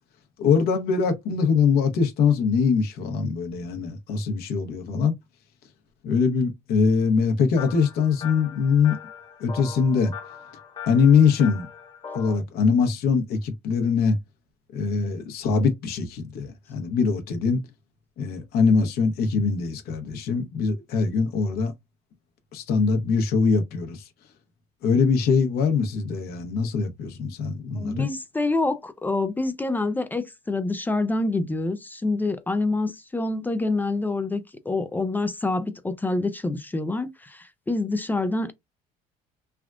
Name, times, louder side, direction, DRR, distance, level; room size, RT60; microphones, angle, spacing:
voice 1, 0.4-5.1 6.0-9.0 9.4-10.1 10.9-11.7 12.1-14.2 14.7-17.6 18.2-21.7 22.5-24.1 24.8-28.1, left 5 dB, 70° left, 0.9 m, -22 dB
sound 1, 7.6-12.3, left 7 dB, 30° left, 1.1 m, -40 dB
voice 2, 27.8-38.5, left 2 dB, 10° left, 0.3 m, -26 dB
3.4 x 2.3 x 2.3 m
cardioid pair, 135°, 16 cm